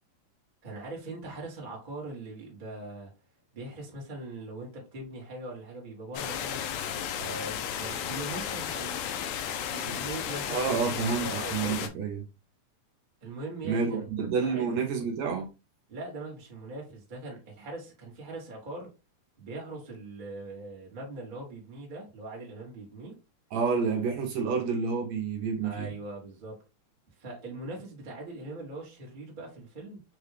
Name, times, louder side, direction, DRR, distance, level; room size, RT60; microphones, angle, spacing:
voice 1, 0.6-3.1 3.5-6.6 7.2-9.1 9.6-11.9 13.2-14.0 14.4-14.6 15.9-18.9 19.4-23.1 25.6-26.6 27.2-30.0, right 2 dB, 45° right, 0.6 m, -41 dB
sound 1, 6.1-11.9, left 9 dB, 80° left, 2.1 m, -34 dB
voice 2, 10.5-12.2 13.6-15.5 23.5-25.9, right 5 dB, 70° right, 1.9 m, -29 dB
5.8 x 2.3 x 3.3 m
omnidirectional pair, 3.6 m